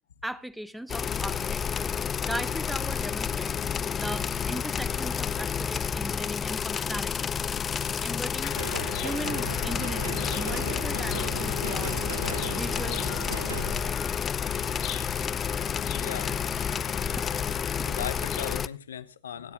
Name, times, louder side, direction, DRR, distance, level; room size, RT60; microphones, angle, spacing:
voice 1, 0.2-1.9 2.2-3.7 4.0-7.3 8.0-8.6 9.0-12.2 12.5-13.0 13.8-14.2 16.5-16.6, right 1 dB, 5° right, 1.2 m, -38 dB
sound 1, 0.9-18.7, left 7 dB, 20° left, 0.5 m, -30 dB
voice 2, 7.6-8.2 15.9-16.3 17.8-19.5, left 9 dB, 70° left, 1.1 m, -38 dB
sound 2, 8.4-18.6, left 13 dB, 40° left, 1.9 m, -40 dB
sound 3, 8.5-13.8, right 3 dB, 70° right, 4.0 m, -36 dB
27.0 x 9.6 x 2.3 m
figure-of-eight pair, 100°, 0 cm